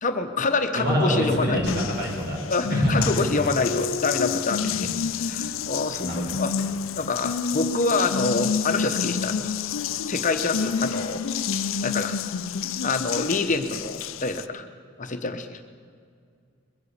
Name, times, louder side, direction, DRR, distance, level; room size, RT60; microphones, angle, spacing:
voice 1, 0.0-1.8 2.5-4.9 5.2-6.5 7.0-9.5 10.1-11.2 11.8-12.2 12.8-14.7 15.0-15.6, left 3 dB, 40° left, 7 dB, 0.9 m, -26 dB
voice 2, 0.7-2.4 2.7-3.2 4.6-5.0 6.0-6.4, equal, 55° right, -2 dB, 4.9 m, -25 dB
Water tap faucet, 1.7-14.5, left 6 dB, 75° left, 0.5 m, -29 dB
21.5 x 8.2 x 8.2 m, 2.2 s
head